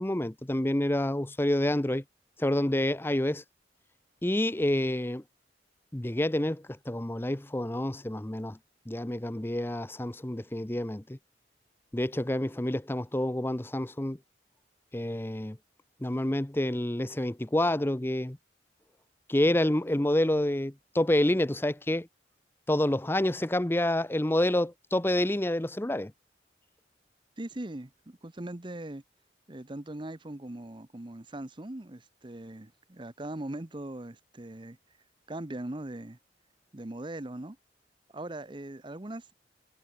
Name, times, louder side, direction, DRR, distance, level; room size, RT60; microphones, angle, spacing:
voice 1, 0.0-2.0 2.4-3.4 4.2-5.2 5.9-8.6 8.9-11.2 11.9-14.2 14.9-15.6 16.0-18.4 19.3-22.1 22.7-26.1, left 1 dB, 10° left, 0.7 m, -28 dB
voice 2, 27.4-29.0 29.5-34.8 35.3-36.2 36.7-37.6 38.1-39.3, right 1 dB, 25° right, 0.9 m, -40 dB
head